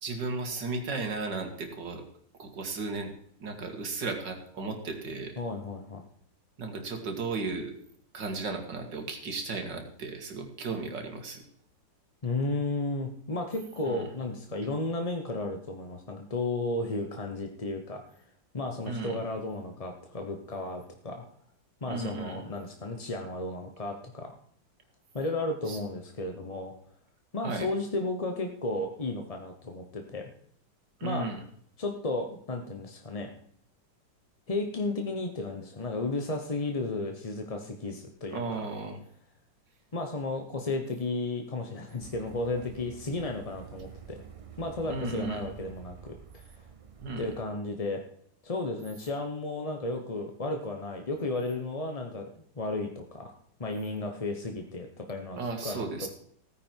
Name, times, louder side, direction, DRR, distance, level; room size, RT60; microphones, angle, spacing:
voice 1, 0.0-2.0 2.4-3.1 3.4-5.4 6.6-7.8 8.1-11.4 13.9-14.0 18.8-19.2 21.9-22.4 25.7-25.8 27.4-27.7 31.0-31.4 38.3-39.0 44.9-45.4 47.0-47.3 55.4-56.1, right 3 dB, 70° right, 4 dB, 2.5 m, -35 dB
voice 2, 5.4-6.0 12.2-18.0 18.5-21.2 21.8-24.3 25.1-26.7 27.3-30.3 31.0-31.3 31.8-33.3 34.5-38.7 39.9-44.2 44.6-46.6 47.2-48.0 48.4-53.3 53.6-56.1, left 2 dB, 25° left, 4 dB, 0.8 m, -33 dB
sound 1, 42.0-47.4, right 8 dB, 35° right, 0.5 m, -48 dB
16.0 x 9.7 x 4.6 m, 0.64 s
omnidirectional pair, 2.0 m